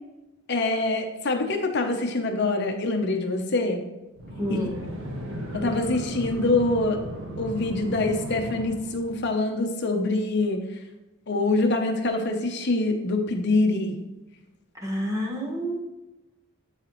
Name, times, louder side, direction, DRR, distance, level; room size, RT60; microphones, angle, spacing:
voice 1, 0.5-3.8 4.5-4.6 5.5-7.0 7.4-10.6 11.3-13.9, left 2 dB, 50° left, 4 dB, 0.8 m, -25 dB
sound 1, 4.2-9.4, equal, 70° right, 1.0 m, -36 dB
voice 2, 4.4-4.8 5.6-5.8 14.8-15.8, equal, 15° right, -1 dB, 1.2 m, -29 dB
10.5 x 4.2 x 3.1 m, 1.0 s
head